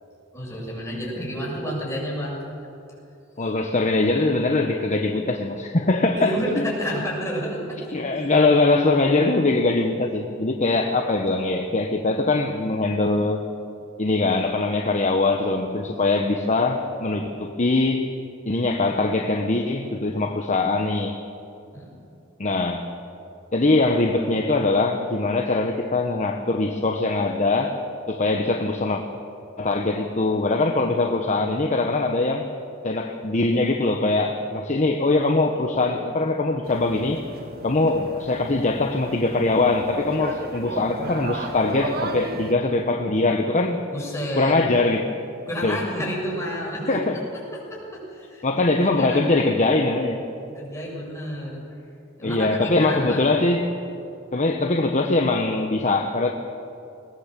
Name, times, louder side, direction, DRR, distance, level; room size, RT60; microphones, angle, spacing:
voice 1, 0.3-2.4 6.2-7.8 8.1-8.3 21.7-21.9 43.9-44.6 45.5-47.0 47.5-49.5 50.5-51.6 52.2-53.3, equal, 15° left, -4 dB, 7.3 m, -30 dB
voice 2, 3.4-6.7 7.9-13.4 14.0-18.1 18.4-21.2 22.4-22.9 23.5-27.8 28.1-29.0 29.6-32.5 32.8-37.2 37.6-43.8 44.4-45.0 45.6-45.8 46.9-47.2 48.4-50.2 52.2-53.7 54.3-56.3, left 2 dB, 35° left, 4 dB, 1.1 m, -22 dB
sound 1, 36.6-42.5, right 2 dB, 50° right, 1.7 m, -34 dB
21.0 x 20.5 x 7.5 m, 2.7 s
head